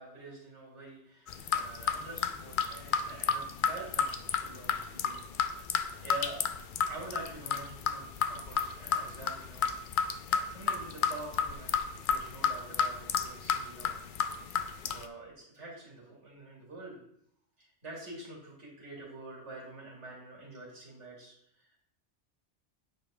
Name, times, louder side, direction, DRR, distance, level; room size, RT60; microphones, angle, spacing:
voice 1, 0.0-6.5 6.9-9.7 10.3-13.9 14.5-17.0 17.6-21.8, right 2 dB, 80° right, -3 dB, 2.6 m, -47 dB
sound 1, 1.3-15.1, left 6 dB, 60° left, 0.6 m, -32 dB
8.6 x 6.8 x 2.5 m, 0.72 s
omnidirectional pair, 1.2 m